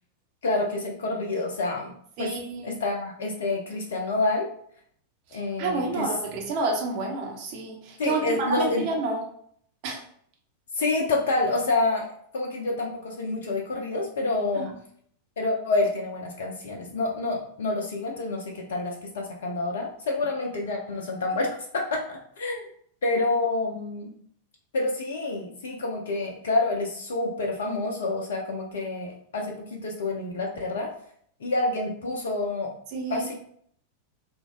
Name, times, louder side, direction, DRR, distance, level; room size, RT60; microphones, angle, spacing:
voice 1, 0.4-1.9 2.2-2.3 2.6-4.5 5.3-6.1 8.0-8.8 10.7-12.1 12.3-14.7 15.4-22.7 23.0-24.1 24.7-30.9 31.4-32.7 33.1-33.3, left 2 dB, 60° left, 1 dB, 0.4 m, -28 dB
voice 2, 2.2-2.8 5.3-9.2 9.8-10.0 14.6-14.7 32.9-33.3, right 3 dB, 45° right, 0 dB, 0.7 m, -29 dB
3.2 x 2.0 x 2.3 m, 0.63 s
figure-of-eight pair, 90°, 0 cm